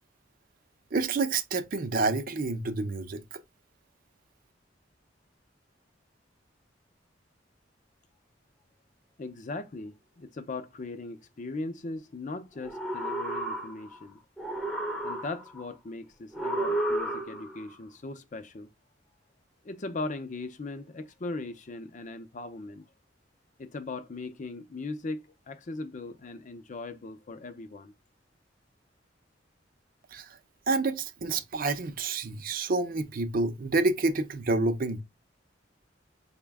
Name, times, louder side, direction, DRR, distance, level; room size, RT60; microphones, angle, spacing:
voice 1, 0.9-3.2 30.1-30.3 30.7-35.0, right 3 dB, 50° right, 0.5 m, -28 dB
voice 2, 9.2-14.2 15.0-18.7 19.7-22.8 23.6-27.9, left 2 dB, 45° left, 0.5 m, -39 dB
sound 1, 12.6-14.0 14.4-15.6 16.3-17.6, right 1 dB, 5° left, 0.6 m, -32 dB
4.9 x 2.1 x 3.4 m
head